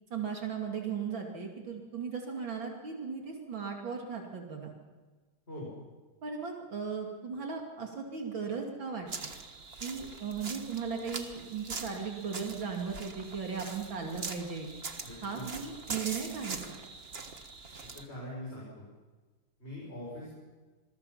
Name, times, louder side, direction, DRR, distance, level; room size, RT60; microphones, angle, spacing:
voice 1, 0.1-4.7 6.2-9.3 9.8-14.7 15.2-16.8, right 6 dB, 70° right, 1 dB, 3.3 m, -37 dB
sound 1, 9.1-18.0, right 4 dB, 35° right, 1.5 m, -42 dB
voice 2, 15.0-15.5 17.9-18.9 19.6-20.4, equal, 30° left, -6 dB, 6.8 m, -42 dB
27.0 x 21.0 x 5.8 m, 1.3 s
omnidirectional pair, 2.2 m